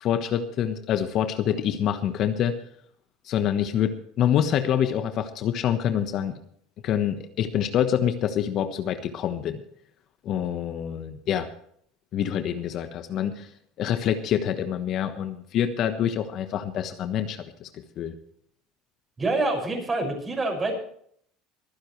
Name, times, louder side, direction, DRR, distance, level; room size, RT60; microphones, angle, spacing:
voice 1, 0.0-2.6 3.2-6.3 6.8-9.6 10.2-11.5 12.1-13.5 13.8-17.7 18.0-18.1, left 9 dB, 50° left, 9 dB, 1.2 m, -26 dB
voice 2, 19.2-20.8, right 2 dB, 20° right, 2 dB, 6.2 m, -26 dB
24.5 x 10.0 x 3.3 m, 0.64 s
supercardioid pair, 105°, 0 cm